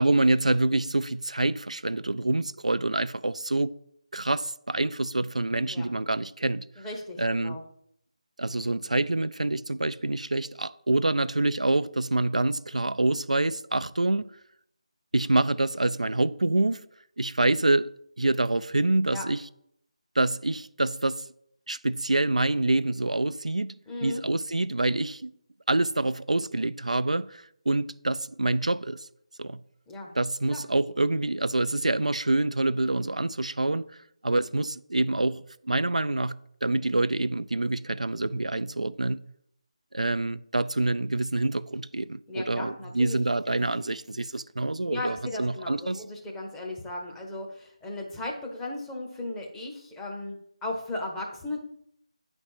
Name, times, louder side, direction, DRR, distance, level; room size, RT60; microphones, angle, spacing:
voice 1, 0.0-3.8 4.1-6.7 7.2-7.6 8.4-14.3 15.1-16.8 17.2-17.9 18.2-19.4 20.2-21.3 21.7-23.8 24.0-25.3 25.7-29.1 29.4-29.6 30.2-33.9 34.2-39.2 39.9-46.0, right 2 dB, 85° right, 0.3 m, -26 dB
voice 2, 6.8-7.6 19.1-19.2 23.9-24.2 29.9-30.1 30.5-30.6 42.3-43.2 44.8-50.3 50.6-51.6, left 2 dB, 10° left, 0.9 m, -36 dB
9.1 x 4.3 x 4.8 m
figure-of-eight pair, 160°, 4 cm